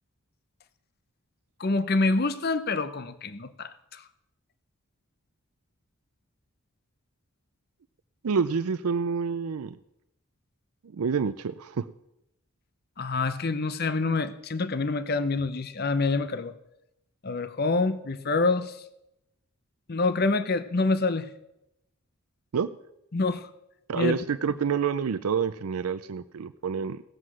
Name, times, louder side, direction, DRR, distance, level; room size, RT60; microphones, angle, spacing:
voice 1, 1.6-4.0 13.0-16.5 17.2-18.8 19.9-21.3 23.1-23.5 23.9-24.2, left 3 dB, 45° left, 12 dB, 0.7 m, -26 dB
voice 2, 8.2-9.7 11.0-11.9 22.5-22.7 23.9-27.0, right 6 dB, 80° right, 12 dB, 0.5 m, -28 dB
17.5 x 7.7 x 6.2 m, 0.86 s
head